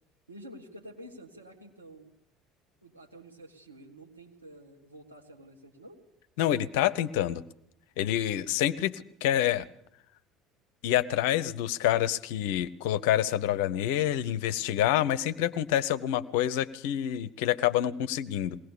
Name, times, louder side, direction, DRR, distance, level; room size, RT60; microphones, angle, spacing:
voice 1, 0.3-2.1 2.8-6.0, right 1 dB, 90° right, 1 dB, 2.0 m, -49 dB
voice 2, 6.4-7.4 8.0-9.7 10.8-18.6, left 12 dB, 65° left, 15 dB, 0.7 m, -27 dB
21.5 x 18.0 x 7.0 m, 0.78 s
figure-of-eight pair, 65°, 0 cm